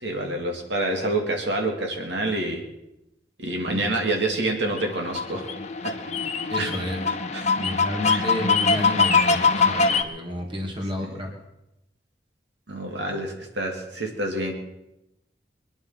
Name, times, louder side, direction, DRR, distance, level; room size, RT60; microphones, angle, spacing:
voice 1, 0.0-2.6 3.4-5.5 5.8-5.9 6.6-6.7 7.3-7.6 8.0-8.2 12.7-14.5, right 2 dB, 80° right, 2 dB, 2.7 m, -27 dB
sound 1, 4.7-10.0, left 4 dB, 40° left, 1.1 m, -23 dB
voice 2, 6.5-7.0 7.5-11.3, left 1 dB, 30° right, 1 dB, 2.8 m, -31 dB
22.5 x 10.5 x 5.9 m, 0.90 s
head